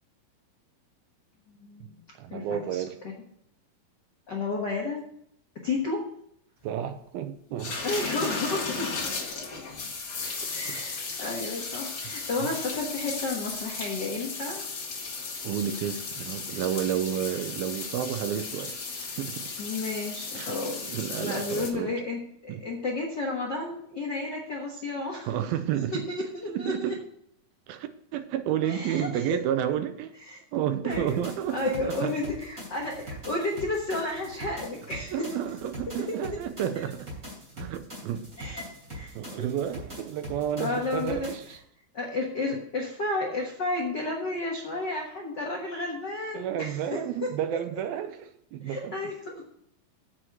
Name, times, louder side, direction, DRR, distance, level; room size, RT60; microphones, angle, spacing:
voice 1, 1.6-2.0 2.3-2.8 4.3-5.0 5.6-6.1 7.8-8.9 10.5-14.6 19.6-20.8 21.2-25.3 26.1-26.9 28.6-29.1 30.3-30.4 30.8-31.2 31.5-35.2 38.4-38.6 38.9-39.5 40.6-41.3 41.9-47.3 48.6-49.4, left 2 dB, 65° left, -2 dB, 1.0 m, -32 dB
voice 2, 2.2-3.0 6.6-7.8 10.2-10.9 12.4-12.5 15.4-19.5 20.3-20.5 20.8-21.9 22.5-22.6 25.3-26.0 26.5-27.0 27.7-30.2 30.5-32.2 35.1-37.1 37.6-38.3 39.2-41.6 46.3-48.9, right 10 dB, 80° right, 9 dB, 2.4 m, -31 dB
sound 1, 7.6-21.7, left 4 dB, 40° left, 1.9 m, -35 dB
sound 2, 30.9-41.6, equal, 25° right, 3.2 m, -43 dB
7.9 x 6.4 x 7.6 m, 0.70 s
omnidirectional pair, 4.4 m